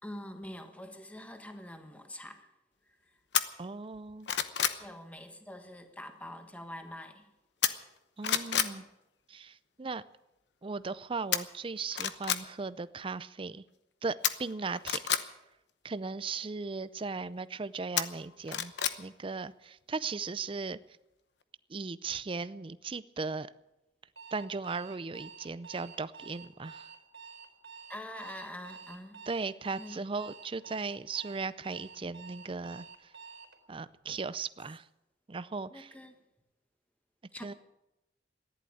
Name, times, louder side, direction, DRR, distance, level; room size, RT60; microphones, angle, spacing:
voice 1, 0.0-2.5 2.8-3.2 4.6-7.3 8.7-8.8 27.9-29.2 29.8-30.0 35.7-36.1 37.3-37.5, left 1 dB, 10° left, 6 dB, 1.4 m, -45 dB
sound 1, 3.3-3.4 3.9-4.8 7.6-8.0 8.2-8.7 11.3-11.4 11.9-12.4 14.2-15.2 18.0-19.0 19.3-19.4, left 10 dB, 75° left, 0.9 m, -29 dB
voice 2, 3.6-4.3 8.2-8.8 9.3-10.0 10.6-13.6 14.0-15.3 15.8-18.7 19.0-20.8 21.7-23.5 24.3-26.9 29.3-32.9 33.7-34.8 35.3-35.9 37.4-37.5, right 4 dB, 30° right, 15 dB, 0.5 m, -37 dB
Alarm, 24.2-33.6, right 5 dB, 80° right, 3.7 m, -49 dB
14.5 x 11.0 x 8.6 m, 0.92 s
head